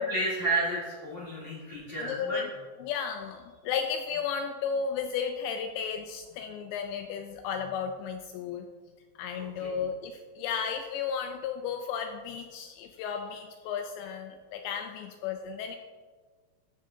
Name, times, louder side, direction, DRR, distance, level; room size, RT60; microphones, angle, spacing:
voice 1, 0.0-2.4 9.3-9.8, right 2 dB, 50° left, -8 dB, 1.3 m, -32 dB
voice 2, 2.0-2.5 2.8-8.7 9.2-15.8, left 7 dB, 85° left, 5 dB, 2.6 m, -34 dB
14.0 x 6.4 x 2.7 m, 1.5 s
omnidirectional pair, 5.6 m